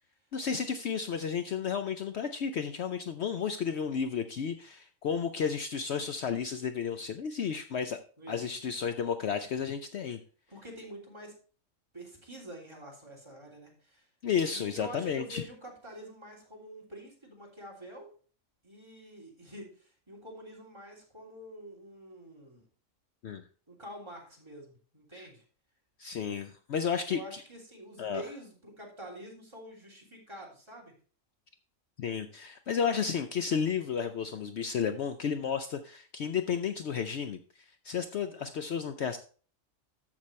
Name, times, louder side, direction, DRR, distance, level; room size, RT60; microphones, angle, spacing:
voice 1, 0.3-8.0 8.3-10.2 14.2-15.4 23.2-23.4 25.1-25.3 26.0-27.2 28.0-28.2 32.0-37.4 37.8-39.2, left 7 dB, 60° left, 8 dB, 0.9 m, -32 dB
voice 2, 8.2-8.7 10.5-11.3 11.9-14.1 14.5-18.1 18.6-22.6 23.7-25.4 27.1-30.9 38.2-38.5, right 1 dB, 20° right, -1 dB, 3.2 m, -47 dB
13.5 x 6.0 x 3.2 m, 0.40 s
omnidirectional pair, 1.3 m